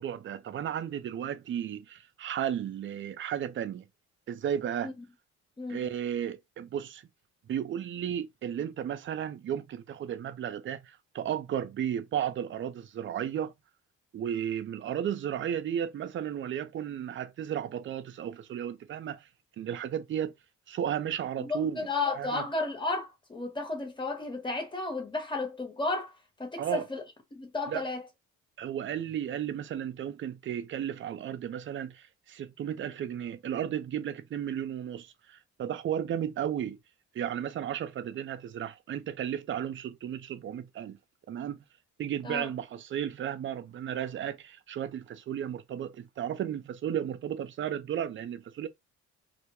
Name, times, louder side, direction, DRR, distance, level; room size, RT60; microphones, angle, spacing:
voice 1, 0.0-3.8 4.3-4.9 5.7-7.0 7.5-13.5 14.1-19.3 19.6-20.3 20.7-21.9 22.1-22.4 26.6-26.9 27.7-27.8 28.6-36.8 37.1-41.0 41.3-41.6 42.0-48.7, right 9 dB, 40° right, 0.4 m, -34 dB
voice 2, 5.6-5.9 21.4-26.1 26.4-27.0 27.3-28.0 42.2-42.5, left 3 dB, 15° left, 1.0 m, -33 dB
2.2 x 2.1 x 2.9 m
cardioid pair, 90°, 30 cm